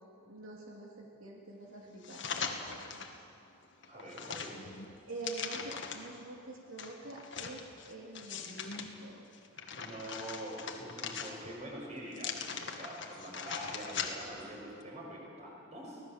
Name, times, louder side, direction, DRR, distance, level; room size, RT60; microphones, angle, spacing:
voice 1, 0.2-3.2 5.1-7.6 7.9-9.2, right 2 dB, 75° right, -2 dB, 2.6 m, -46 dB
sound 1, 2.0-3.2 3.6-6.2 6.8-8.9 9.3-11.6 12.1-14.4 14.8-14.9, left 6 dB, 55° left, 1.7 m, -41 dB
voice 2, 3.9-4.6 9.7-16.0, right 1 dB, 30° right, -2 dB, 5.2 m, -45 dB
24.5 x 18.0 x 7.2 m, 2.6 s
head